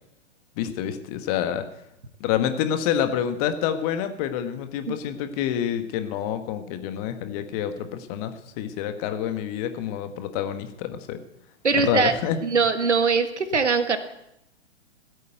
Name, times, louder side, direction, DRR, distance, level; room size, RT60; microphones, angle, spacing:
voice 1, 0.6-1.7 2.2-11.2 11.7-12.4, left 9 dB, 35° left, 9 dB, 1.5 m, -27 dB
voice 2, 11.6-12.1 12.4-14.0, right 5 dB, 80° right, 9 dB, 1.7 m, -21 dB
16.0 x 8.5 x 7.9 m, 0.84 s
figure-of-eight pair, 120°, 34 cm